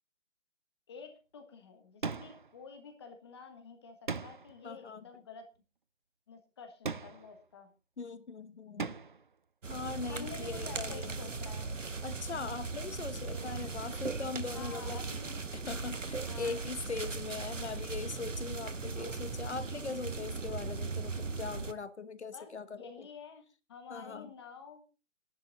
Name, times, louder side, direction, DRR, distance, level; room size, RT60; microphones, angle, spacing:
voice 1, 0.9-5.5 6.3-7.7 10.1-11.7 13.2-13.5 14.5-15.3 16.2-16.6 22.3-22.5 22.8-23.4 23.7-24.8, left 5 dB, 20° left, 1.5 m, -49 dB
sound 1, 2.0-2.6 4.1-4.6 6.8-7.4 8.8-9.3, right 5 dB, 45° right, 0.5 m, -38 dB
voice 2, 4.6-5.1 8.0-9.0 9.7-11.2 12.0-15.0 15.5-23.1 23.9-24.3, left 4 dB, 65° left, 1.4 m, -41 dB
sound 2, 9.6-21.7, right 4 dB, 85° right, 1.4 m, -38 dB
13.0 x 11.0 x 3.9 m
figure-of-eight pair, 160°, 37 cm